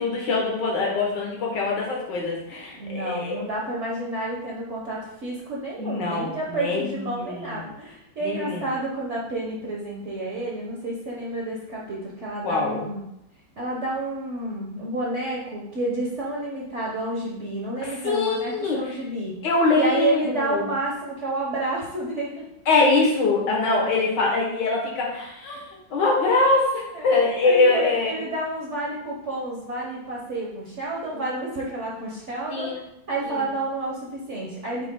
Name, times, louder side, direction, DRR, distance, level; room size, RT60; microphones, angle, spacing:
voice 1, 0.0-3.3 5.8-7.6 8.2-8.6 12.4-12.8 18.0-18.8 19.4-20.7 22.7-25.6 25.9-28.2 32.5-32.8 33.3-33.4, left 3 dB, 65° left, -2 dB, 2.0 m, -23 dB
voice 2, 2.8-13.0 13.6-19.4 19.7-22.4 26.9-34.9, right 2 dB, 45° right, -4 dB, 1.0 m, -30 dB
8.3 x 3.1 x 3.7 m, 0.82 s
omnidirectional pair, 2.1 m